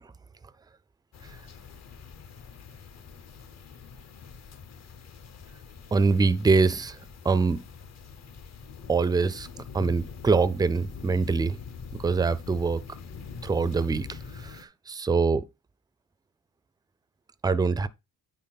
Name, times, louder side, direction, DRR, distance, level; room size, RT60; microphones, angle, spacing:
sound 1, 1.1-14.6, left 5 dB, 50° left, 0.9 m, -44 dB
voice 1, 5.9-7.0 7.2-7.6 8.9-9.5 9.7-11.6 12.0-12.8 13.4-15.4 17.4-17.9, right 4 dB, 10° right, 0.4 m, -24 dB
9.6 x 3.9 x 4.0 m
cardioid pair, 125°, 35 cm